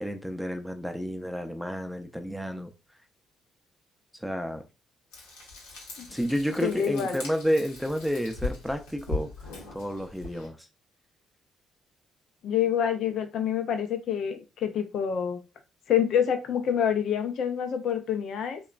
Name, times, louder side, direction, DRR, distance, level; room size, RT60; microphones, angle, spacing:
voice 1, 0.0-2.7 4.2-4.6 6.1-9.3 9.7-10.6, equal, ahead, 0.5 m, -30 dB
Frying (food), 5.1-10.5, left 3 dB, 80° left, 0.9 m, -39 dB
voice 2, 6.6-7.2 12.4-15.4 15.9-18.6, left 8 dB, 65° left, 0.4 m, -27 dB
2.9 x 2.1 x 2.4 m
hypercardioid pair, 50°, 0 cm